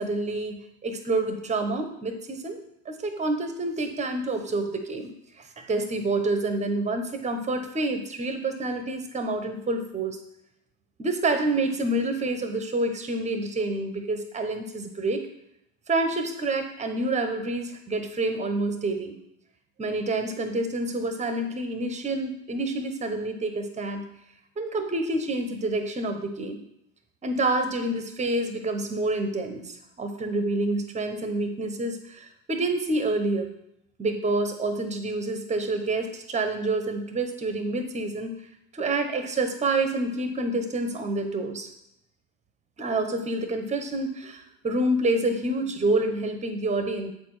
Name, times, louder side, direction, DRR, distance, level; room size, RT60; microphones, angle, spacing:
voice 1, 0.0-2.6 2.9-10.2 11.0-15.3 15.9-19.1 19.8-24.1 24.6-26.6 27.2-33.5 34.0-38.3 38.7-41.7 42.8-47.1, right 2 dB, 15° right, 7 dB, 0.9 m, -28 dB
7.9 x 4.3 x 4.8 m, 0.78 s
hypercardioid pair, 110°, 46 cm